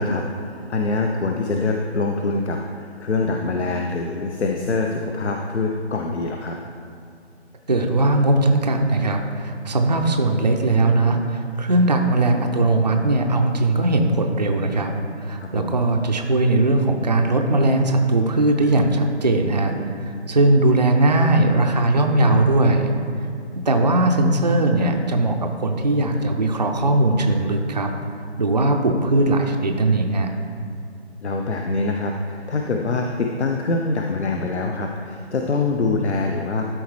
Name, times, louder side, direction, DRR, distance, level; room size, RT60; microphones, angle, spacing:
voice 1, 0.0-6.6 15.4-15.7 31.2-36.6, left 3 dB, 75° left, 2 dB, 0.7 m, -24 dB
voice 2, 7.7-22.9 23.7-27.9 28.4-30.3, right 2 dB, 40° right, 3 dB, 0.5 m, -19 dB
12.5 x 4.3 x 3.1 m, 2.3 s
figure-of-eight pair, 160°, 34 cm